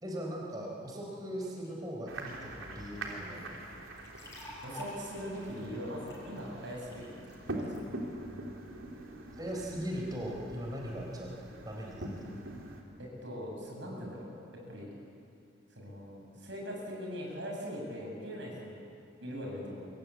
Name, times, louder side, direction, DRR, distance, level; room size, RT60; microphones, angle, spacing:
voice 1, 0.0-3.6 9.3-11.3 11.6-12.4, equal, 20° right, -2 dB, 4.2 m, -39 dB
sound 1, 2.1-12.8, right 1 dB, 85° right, 3.6 m, -44 dB
sound 2, 4.0-7.8, left 1 dB, 15° left, 6.8 m, -49 dB
voice 2, 4.6-7.8 13.0-14.9 15.8-18.8 19.2-19.9, equal, 65° right, -1 dB, 7.6 m, -41 dB
28.0 x 24.0 x 8.6 m, 2.5 s
head